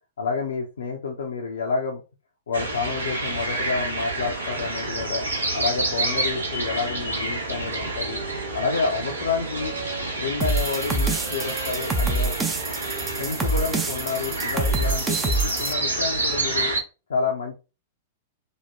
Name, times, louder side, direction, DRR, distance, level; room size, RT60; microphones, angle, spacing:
voice 1, 0.2-2.0 2.5-5.2 5.5-8.2 8.5-9.7 10.2-12.4 13.2-16.7 17.1-17.6, left 4 dB, 70° left, 0 dB, 0.6 m, -29 dB
sound 1, 2.5-16.8, right 2 dB, 80° right, 0.9 m, -29 dB
Wind instrument woodwind instrument, 6.5-10.4 10.7-15.0, right 5 dB, 60° right, 1.3 m, -42 dB
sound 2, 10.4-15.7, right 2 dB, 15° right, 0.5 m, -26 dB
3.0 x 2.2 x 3.3 m, 0.30 s
figure-of-eight pair, 100°, 0 cm